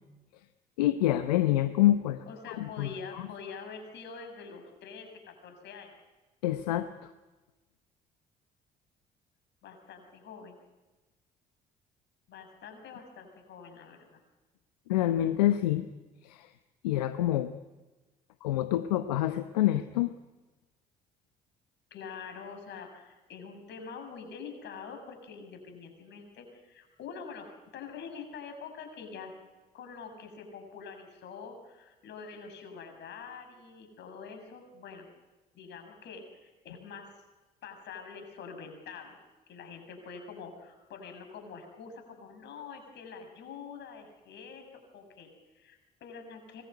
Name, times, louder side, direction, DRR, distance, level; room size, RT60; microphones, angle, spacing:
voice 1, 0.8-2.9 6.4-7.1 14.9-15.9 16.2-16.5 16.8-17.5 18.4-20.1, left 13 dB, 85° left, 10 dB, 0.9 m, -27 dB
voice 2, 2.3-5.9 9.6-10.6 12.3-14.2 21.9-29.3 29.7-35.1 35.5-37.1 37.6-39.2 39.5-46.6, left 5 dB, 65° left, 6 dB, 6.9 m, -45 dB
24.5 x 21.5 x 9.4 m, 1.1 s
hypercardioid pair, 50°, 20 cm